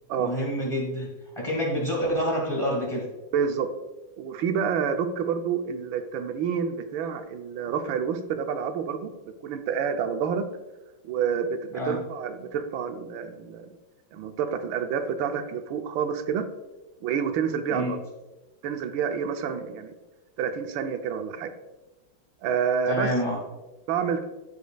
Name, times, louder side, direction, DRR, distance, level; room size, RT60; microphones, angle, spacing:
voice 1, 0.2-3.1 11.7-12.0 17.7-17.9 22.9-23.4, equal, 15° left, -3 dB, 1.5 m, -27 dB
voice 2, 3.3-3.7 4.2-9.1 9.4-10.5 11.0-13.7 14.1-16.4 17.0-18.0 18.6-19.9 20.4-21.5 22.4-23.1 23.9-24.2, right 7 dB, 85° right, 8 dB, 1.4 m, -28 dB
13.0 x 5.2 x 2.3 m, 1.1 s
omnidirectional pair, 2.1 m